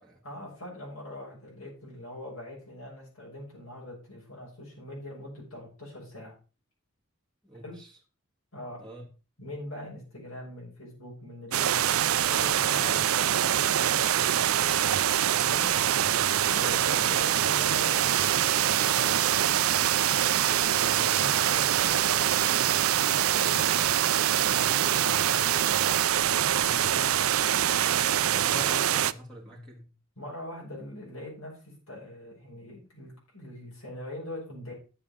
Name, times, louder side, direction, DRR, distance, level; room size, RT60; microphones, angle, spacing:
voice 1, 0.2-6.3 7.5-7.8 8.5-8.8 9.4-14.3 15.4-15.7 16.5-19.2 20.8-23.6 24.4-25.3 26.6-27.1 30.2-34.7, left 1 dB, 80° left, 6.3 m, -42 dB
voice 2, 7.4-8.0 8.8-9.0 16.7-17.1 28.0-29.9, right 1 dB, 5° left, 1.9 m, -45 dB
sound 1, 11.5-29.1, right 11 dB, 85° right, 0.5 m, -24 dB
9.9 x 7.1 x 5.3 m
head